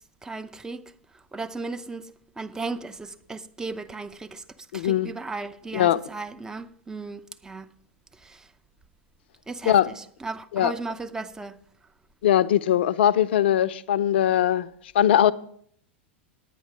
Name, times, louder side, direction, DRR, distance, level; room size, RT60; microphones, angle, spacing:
voice 1, 0.2-0.9 1.3-4.4 4.7-7.7 8.2-8.5 9.5-11.6, right 3 dB, 10° right, 0.5 m, -36 dB
voice 2, 4.7-5.1 5.7-6.0 9.7-9.9 10.5-10.7 12.2-14.7 14.9-15.3, left 11 dB, 60° left, 0.5 m, -20 dB
10.0 x 9.3 x 4.7 m
figure-of-eight pair, 90°, 7 cm